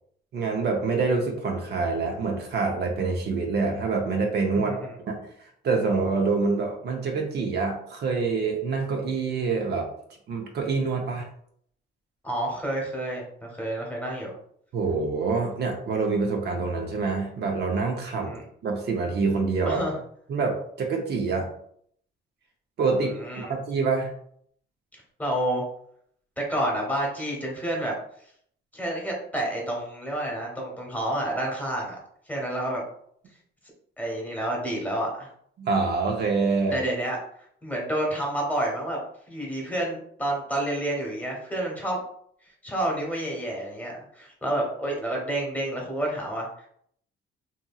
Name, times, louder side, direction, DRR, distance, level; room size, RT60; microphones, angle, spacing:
voice 1, 0.3-4.7 5.1-9.9 10.3-11.3 14.7-18.3 18.6-19.8 20.3-21.5 22.8-23.1 23.5-24.1 35.6-36.8, right 4 dB, 55° right, 2 dB, 0.6 m, -26 dB
voice 2, 12.2-14.3 18.2-18.4 19.6-19.9 23.2-23.5 24.9-25.6 26.4-27.9 28.7-32.0 32.3-32.8 34.0-35.3 36.7-37.2 37.6-39.0 39.3-42.0 42.6-46.7, right 1 dB, 10° left, -1 dB, 1.0 m, -29 dB
2.8 x 2.7 x 2.3 m, 0.65 s
cardioid pair, 90°, 20 cm